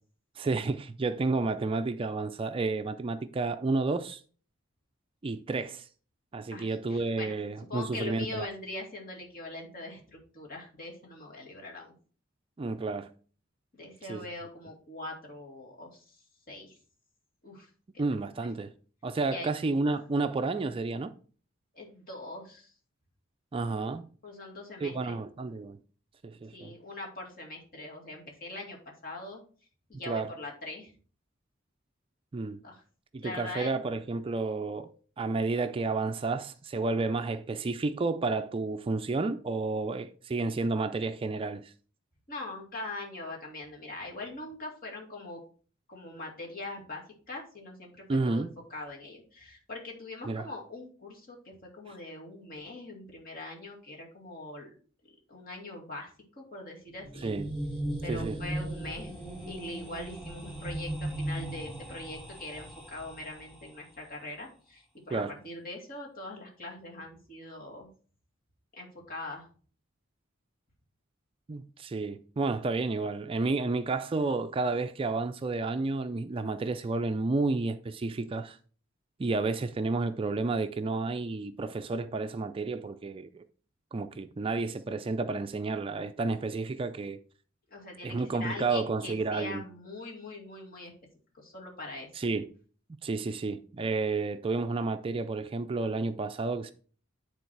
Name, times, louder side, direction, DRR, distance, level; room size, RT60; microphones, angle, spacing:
voice 1, 0.4-4.2 5.2-5.9 6.3-8.5 12.6-13.1 14.1-14.3 18.0-18.7 19.0-21.1 23.5-24.1 24.8-25.8 26.2-26.7 30.1-30.3 32.3-32.6 33.1-41.7 48.1-48.5 50.3-50.5 57.2-57.5 58.1-58.4 65.1-65.3 71.5-78.6 79.2-83.4 83.9-87.2 88.0-89.6 92.1-92.5 93.0-96.7, right 3 dB, 25° right, 0.4 m, -31 dB
voice 2, 6.5-7.4 7.7-11.9 13.7-16.8 17.4-17.7 17.9-18.0 19.3-19.5 21.7-22.7 24.2-25.1 26.5-29.4 29.9-30.9 32.6-32.8 33.2-33.7 42.3-45.4 45.9-47.9 48.2-54.7 55.3-56.1 56.4-57.3 58.0-59.1 59.5-67.9 68.8-69.5 87.7-90.9 91.3-92.1, left 2 dB, 45° left, 2.3 m, -42 dB
sound 1, 56.9-63.8, right 1 dB, 25° left, 4.4 m, -37 dB
9.7 x 3.9 x 4.6 m
head